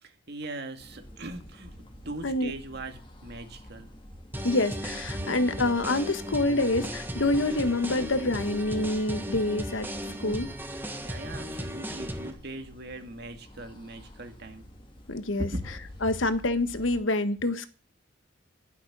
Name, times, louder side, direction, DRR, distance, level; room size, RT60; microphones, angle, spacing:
voice 1, 0.0-3.9 5.2-5.6 11.0-14.7 15.4-15.6, right 2 dB, 60° right, 2.1 m, -40 dB
sound 1, 0.8-17.0, left 1 dB, 25° left, 2.0 m, -49 dB
sound 2, 4.3-12.3, equal, 10° right, 1.4 m, -36 dB
voice 2, 4.4-9.9 10.2-10.5 15.1-15.5 16.0-17.7, left 2 dB, 85° left, 1.4 m, -26 dB
12.0 x 11.5 x 6.1 m
head